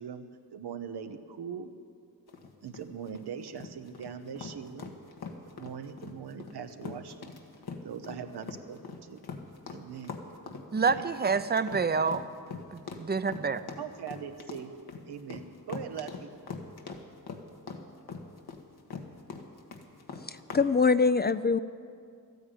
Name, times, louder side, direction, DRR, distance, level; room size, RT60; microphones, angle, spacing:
voice 1, 0.0-1.7 2.6-4.9 5.5-7.3 7.8-9.2 9.7-10.1 10.7-11.1 11.9-12.1 13.8-14.7 15.1-16.3, right 7 dB, 85° right, 7 dB, 1.0 m, -41 dB
sound 1, 2.3-20.7, left 5 dB, 75° left, 1.5 m, -42 dB
voice 2, 10.7-12.2 12.7-13.7, right 5 dB, 25° right, 12 dB, 0.6 m, -28 dB
voice 3, 20.2-21.6, left 4 dB, 25° left, 13 dB, 0.4 m, -24 dB
13.0 x 9.5 x 9.2 m, 2.3 s
cardioid pair, 50°, 39 cm